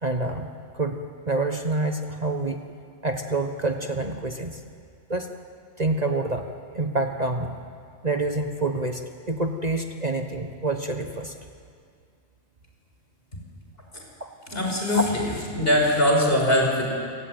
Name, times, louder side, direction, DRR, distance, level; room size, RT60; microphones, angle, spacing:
voice 1, 0.0-2.6 3.0-4.6 5.1-5.3 5.8-6.5 6.7-7.5 8.0-11.3 14.2-14.3 14.9-15.0, right 2 dB, 35° right, 5 dB, 1.2 m, -27 dB
voice 2, 14.5-15.3 15.5-16.9, left 1 dB, 45° left, 0 dB, 5.5 m, -22 dB
28.0 x 18.0 x 9.3 m, 2.3 s
omnidirectional pair, 1.4 m